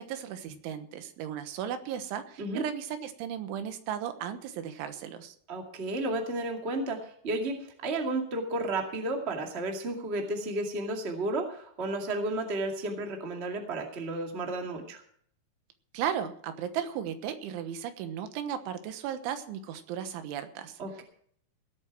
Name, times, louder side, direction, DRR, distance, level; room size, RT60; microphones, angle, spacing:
voice 1, 0.0-5.4 15.9-20.8, right 9 dB, 85° right, 9 dB, 3.6 m, -35 dB
voice 2, 5.5-15.0 20.8-21.0, right 2 dB, 30° right, 2 dB, 1.1 m, -32 dB
18.0 x 8.6 x 6.0 m, 0.63 s
omnidirectional pair, 5.4 m